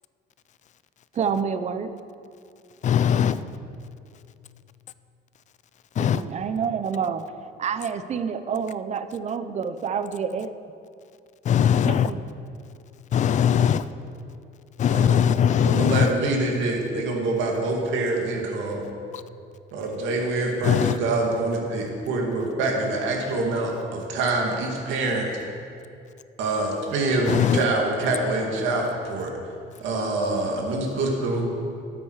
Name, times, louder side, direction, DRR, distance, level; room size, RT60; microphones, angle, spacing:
voice 1, 1.1-1.9 6.0-7.3 7.6-10.5 11.9-12.2 13.6-13.8, right 6 dB, 35° right, 11 dB, 0.6 m, -28 dB
voice 2, 2.8-3.4 6.0-6.2 11.4-12.1 13.1-13.8 14.8-16.1 19.1-19.2 20.6-21.0 27.3-27.6, left 8 dB, 40° left, 14 dB, 0.4 m, -20 dB
voice 3, 14.9-18.8 19.7-25.3 26.4-29.3 29.8-31.5, right 2 dB, 80° right, 0 dB, 2.3 m, -25 dB
12.5 x 8.8 x 4.8 m, 2.5 s
cardioid pair, 140°, 19 cm